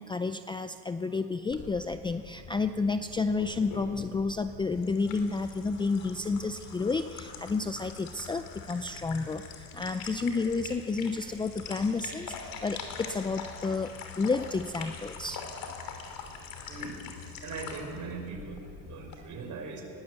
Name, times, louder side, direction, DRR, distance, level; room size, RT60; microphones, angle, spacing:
voice 1, 0.0-15.5, left 4 dB, 10° left, 9 dB, 0.4 m, -31 dB
sound 1, 1.5-19.1, left 5 dB, 60° left, 3.2 m, -43 dB
voice 2, 16.7-17.0 17.4-19.8, right 4 dB, 50° right, 2 dB, 5.4 m, -40 dB
20.5 x 18.0 x 8.1 m, 2.4 s
cardioid pair, 135°, 39 cm